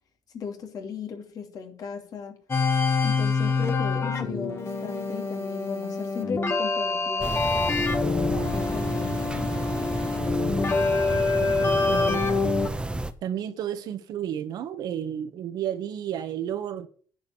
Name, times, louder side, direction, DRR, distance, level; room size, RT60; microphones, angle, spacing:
voice 1, 0.3-2.4 3.0-7.5 7.8-9.5, left 6 dB, 60° left, 2.9 m, -36 dB
sound 1, 2.5-12.7, left 4 dB, 35° left, 2.1 m, -26 dB
sound 2, 7.2-13.1, right 1 dB, 15° right, 1.2 m, -31 dB
voice 2, 10.7-12.2 13.2-16.9, right 10 dB, 70° right, 1.6 m, -32 dB
10.5 x 5.2 x 8.3 m
supercardioid pair, 80°, 7 cm